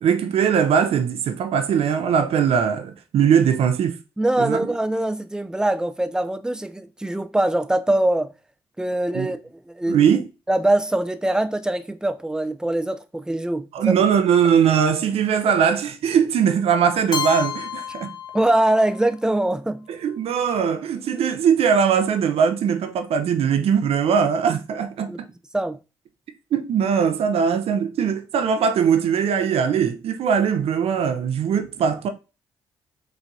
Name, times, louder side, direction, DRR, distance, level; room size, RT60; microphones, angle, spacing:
voice 1, 0.0-4.0 4.4-4.6 9.1-9.3 9.9-10.2 13.7-18.1 19.9-25.3 26.5-32.1, right 7 dB, 60° right, 0.7 m, -20 dB
voice 2, 4.2-8.3 8.8-9.4 9.7-10.0 10.5-13.9 18.3-19.9 25.1-25.2 25.5-25.8, right 1 dB, 5° right, 0.5 m, -22 dB
Keyboard (musical), 17.1-19.1, left 8 dB, 40° left, 0.7 m, -30 dB
4.8 x 3.2 x 2.7 m
hypercardioid pair, 45°, 12 cm